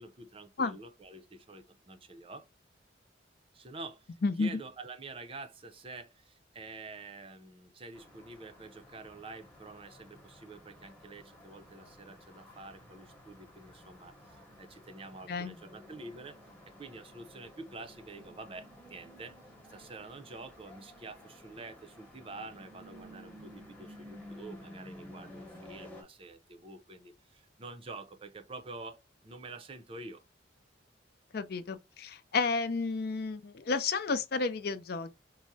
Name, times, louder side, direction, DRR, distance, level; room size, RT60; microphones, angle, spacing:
voice 1, 0.0-2.5 3.5-16.4 16.8-19.4 19.7-30.2, right 3 dB, 30° right, 0.5 m, -47 dB
voice 2, 4.2-4.6 15.3-15.5 31.3-35.1, left 4 dB, 55° left, 0.5 m, -31 dB
sound 1, 7.9-26.0, equal, 5° left, 0.9 m, -53 dB
4.6 x 2.1 x 2.6 m
head